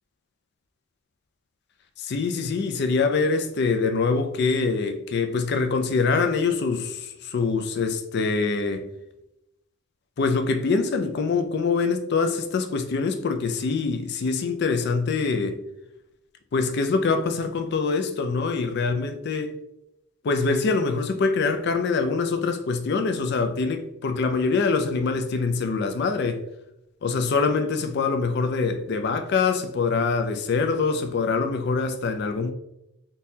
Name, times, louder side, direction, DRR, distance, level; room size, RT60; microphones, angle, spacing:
voice 1, 2.0-8.9 10.2-15.6 16.5-19.5 20.2-26.4 27.0-32.5, left 4 dB, 50° left, 0.4 m, -24 dB
3.7 x 2.8 x 2.7 m
head